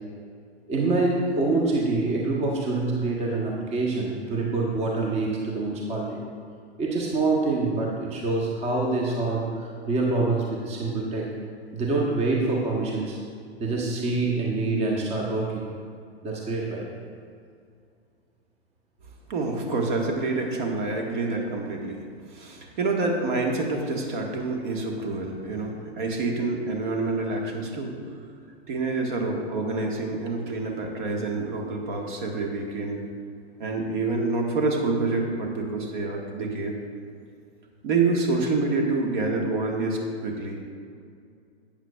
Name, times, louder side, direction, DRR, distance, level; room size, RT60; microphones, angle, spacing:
voice 1, 0.7-6.2 6.8-11.3 11.7-13.2 13.6-15.7 16.2-16.9, right 3 dB, 20° right, -2 dB, 1.0 m, -26 dB
voice 2, 19.3-22.0 22.3-27.9 28.7-33.0 33.6-36.7 37.8-40.7, right 3 dB, 50° right, 1 dB, 1.5 m, -27 dB
12.0 x 8.5 x 2.3 m, 2.3 s
figure-of-eight pair, 105°, 32 cm